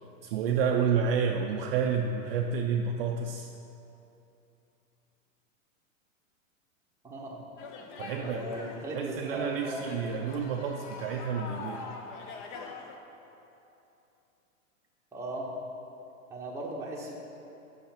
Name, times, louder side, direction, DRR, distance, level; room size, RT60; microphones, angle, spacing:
voice 1, 0.2-3.5 8.0-8.7 8.9-11.9, right 6 dB, 45° right, 3 dB, 0.4 m, -30 dB
voice 2, 7.0-7.4 7.9-10.3 15.1-15.5 16.3-17.1, right 1 dB, 5° right, -3 dB, 0.9 m, -37 dB
sound 1, 7.6-13.0, left 4 dB, 40° left, 0.7 m, -43 dB
6.7 x 5.9 x 5.8 m, 2.9 s
hypercardioid pair, 140°, 41 cm